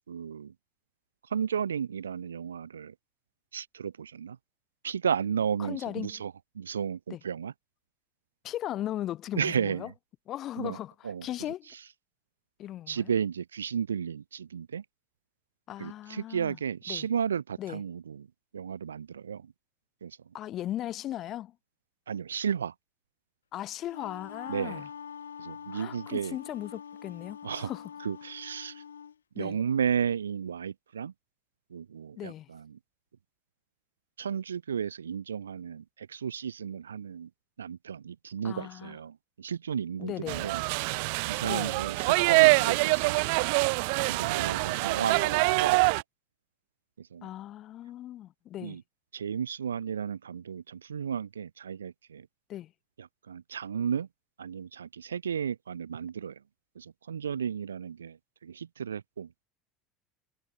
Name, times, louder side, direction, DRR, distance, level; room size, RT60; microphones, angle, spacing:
voice 1, 0.1-0.5 1.3-2.9 3.5-4.4 4.8-7.5 9.3-9.9 10.6-10.8 11.0-11.3 12.9-14.8 15.8-18.3 18.5-19.5 20.0-20.2 22.1-22.7 24.5-24.8 25.4-26.4 27.4-27.7 28.0-28.8 29.3-31.1 31.7-32.8 34.2-37.3 37.6-40.6 41.3-43.2 44.1-45.8 47.0-47.3 48.6-48.8 49.1-52.3 53.0-54.1 54.4-56.4 56.7-59.3, right 7 dB, 80° right, 1.3 m, -33 dB
voice 2, 5.6-6.2 7.1-7.2 8.4-9.9 10.3-11.7 12.6-13.1 15.7-16.6 16.9-17.1 17.6-17.8 20.3-21.5 23.5-24.9 25.7-27.9 29.3-29.6 32.2-32.5 38.4-39.0 40.0-40.5 41.4-41.8 47.2-48.8 52.5-52.7, left 13 dB, 45° left, 3.4 m, -37 dB
Wind instrument woodwind instrument, 23.7-29.1, left 7 dB, 80° left, 2.1 m, -44 dB
sound 1, 40.3-46.0, right 33 dB, 60° right, 0.8 m, -25 dB
figure-of-eight pair, 70°, 0 cm